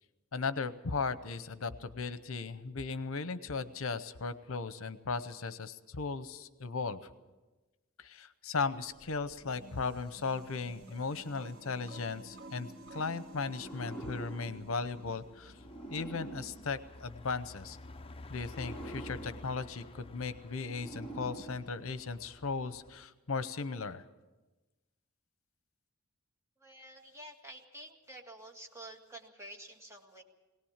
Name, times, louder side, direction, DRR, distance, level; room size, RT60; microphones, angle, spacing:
voice 1, 0.3-7.0 8.0-15.6 15.9-17.8 18.3-24.0, left 4 dB, 75° left, 13 dB, 0.8 m, -37 dB
sound 1, 8.9-23.1, left 2 dB, 25° left, 0.6 m, -53 dB
sound 2, 9.4-15.7, right 2 dB, 80° right, 2.1 m, -52 dB
sound 3, 13.5-17.6 18.3-22.3, right 1 dB, 5° left, 2.4 m, -47 dB
voice 2, 26.6-30.2, right 1 dB, 15° right, 1 dB, 2.1 m, -50 dB
21.0 x 18.0 x 7.3 m, 1.1 s
head